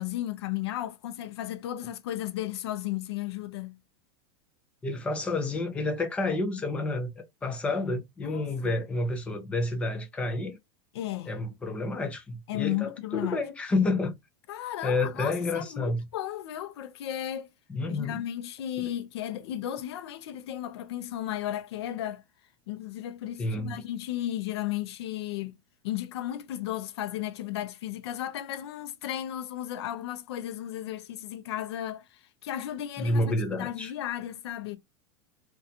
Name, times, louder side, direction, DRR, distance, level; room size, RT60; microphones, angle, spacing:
voice 1, 0.0-3.8 8.2-8.8 10.9-11.3 12.5-13.4 14.5-17.5 17.9-22.2 22.7-25.5 25.8-33.2 33.5-34.8, left 12 dB, 80° left, 0.5 m, -34 dB
voice 2, 4.8-10.6 11.3-14.2 14.8-16.1 17.7-18.2 18.8-18.9 23.4-23.8 33.0-33.9, left 2 dB, 10° left, 0.4 m, -29 dB
2.5 x 2.3 x 2.7 m
supercardioid pair, 175°, 14 cm